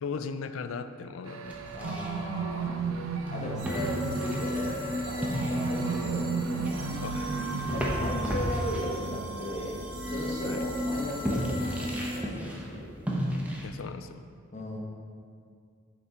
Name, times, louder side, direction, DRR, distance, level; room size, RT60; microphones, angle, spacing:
voice 1, 0.0-1.7 7.0-7.6 10.5-10.7 13.6-14.3, left 5 dB, 85° left, 11 dB, 0.4 m, -38 dB
sound 1, 1.3-7.8, right 5 dB, 85° right, 0.5 m, -34 dB
sound 2, 1.5-13.7, equal, 5° right, 0.9 m, -36 dB
voice 2, 1.7-2.9 3.3-7.0 7.7-12.9 14.5-14.8, equal, 35° left, -2 dB, 1.2 m, -36 dB
sound 3, 3.6-12.2, equal, 65° right, 1.3 m, -35 dB
6.8 x 6.0 x 4.3 m, 2.3 s
head